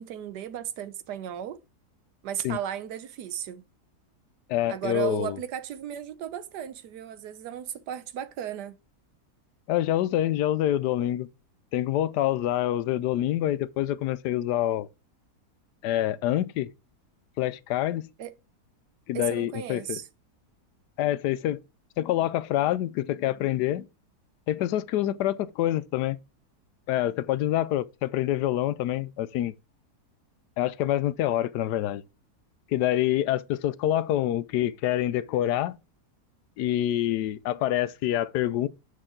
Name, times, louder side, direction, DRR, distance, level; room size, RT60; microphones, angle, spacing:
voice 1, 0.0-1.6 2.2-3.6 4.7-8.8 18.2-18.3 19.1-20.1, right 10 dB, 90° right, 1.4 m, -35 dB
voice 2, 4.5-5.4 9.7-11.3 11.7-14.9 15.8-16.7 17.4-18.0 19.1-20.0 21.0-21.6 22.0-23.9 24.5-26.2 26.9-29.5 30.6-32.0 32.7-35.8 36.6-38.7, left 13 dB, 90° left, 1.2 m, -26 dB
6.9 x 6.6 x 3.7 m
omnidirectional pair, 1.7 m